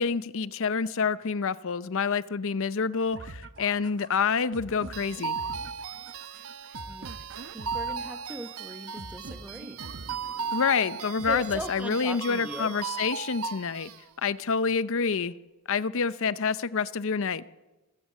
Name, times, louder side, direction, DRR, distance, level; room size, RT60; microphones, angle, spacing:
voice 1, 0.0-5.4 10.5-13.9 14.2-15.3 15.7-17.4, left 5 dB, 65° left, 0.6 m, -27 dB
sound 1, 3.1-12.1, right 2 dB, 60° right, 1.1 m, -45 dB
sound 2, 4.9-14.0, right 6 dB, 80° right, 0.9 m, -37 dB
voice 2, 6.3-7.3 7.5-9.8 11.3-12.8, right 1 dB, 5° right, 0.9 m, -40 dB
27.0 x 15.5 x 7.5 m
head